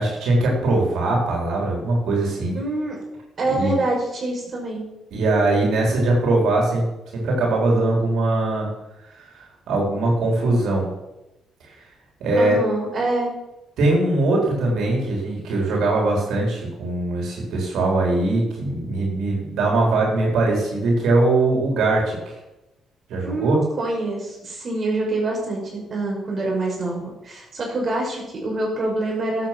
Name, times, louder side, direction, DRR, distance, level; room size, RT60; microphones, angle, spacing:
voice 1, 0.0-2.6 3.5-3.8 5.1-6.9 7.1-8.7 9.2-10.9 12.2-12.6 13.8-22.4 23.1-23.6, right 2 dB, 80° right, -1 dB, 4.1 m, -21 dB
voice 2, 2.5-3.0 3.4-4.9 12.4-13.3 23.2-29.5, right 2 dB, 45° right, -1 dB, 5.7 m, -26 dB
12.5 x 8.5 x 6.1 m, 0.95 s
cardioid pair, 90°, 0 cm